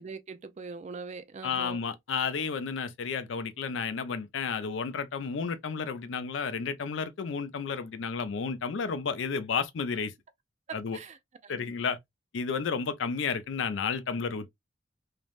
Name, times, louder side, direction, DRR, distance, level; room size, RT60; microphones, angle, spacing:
voice 1, 0.0-1.8 10.9-11.2 11.4-11.6, right 4 dB, 40° right, 0.3 m, -42 dB
voice 2, 1.4-10.1 10.7-11.0 11.5-12.0 12.3-14.5, left 5 dB, 90° left, 0.4 m, -32 dB
3.3 x 2.1 x 2.4 m
head